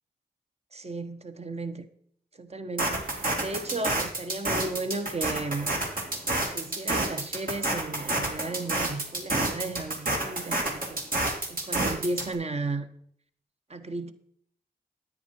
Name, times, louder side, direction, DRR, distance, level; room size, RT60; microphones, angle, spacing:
voice 1, 0.7-1.9 2.4-5.8 6.5-11.0 11.5-12.9 13.7-14.1, right 2 dB, 40° right, 1.1 m, -34 dB
sound 1, 2.8-12.3, right 2 dB, 60° right, 2.8 m, -28 dB
10.0 x 8.8 x 4.5 m
cardioid pair, 55°, 16 cm